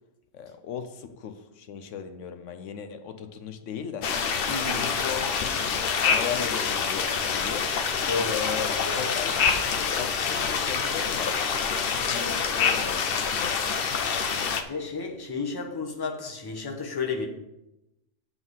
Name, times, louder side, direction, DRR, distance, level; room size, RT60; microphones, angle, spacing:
voice 1, 0.3-4.1 4.8-7.7 8.3-9.5 9.7-11.3 11.7-13.6, left 7 dB, 85° left, 1.0 m, -37 dB
sound 1, 4.0-14.6, left 6 dB, 60° left, 0.8 m, -26 dB
voice 2, 4.5-4.9 8.1-8.4 8.7-9.0 14.7-17.3, left 4 dB, 20° left, 0.9 m, -32 dB
7.9 x 3.7 x 6.2 m
omnidirectional pair, 1.2 m